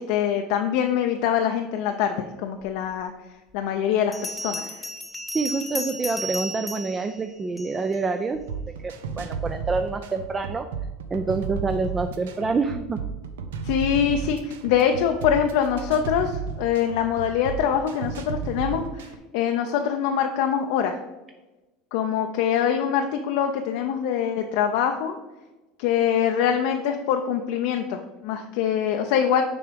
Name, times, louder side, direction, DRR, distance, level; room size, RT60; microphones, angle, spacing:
voice 1, 0.0-3.1 3.5-4.7 13.6-18.8 19.3-21.0 21.9-25.2 25.8-29.4, left 8 dB, 70° left, 4 dB, 0.5 m, -24 dB
Bell, 2.9-3.0 4.1-8.0, equal, 15° left, 0.8 m, -34 dB
voice 2, 5.3-8.4 8.8-10.7 11.1-13.0, right 4 dB, 25° right, 8 dB, 0.4 m, -27 dB
sound 1, 8.3-19.2, right 6 dB, 85° right, 0.5 m, -33 dB
6.0 x 3.5 x 5.0 m, 1.1 s
hypercardioid pair, 95°, 0 cm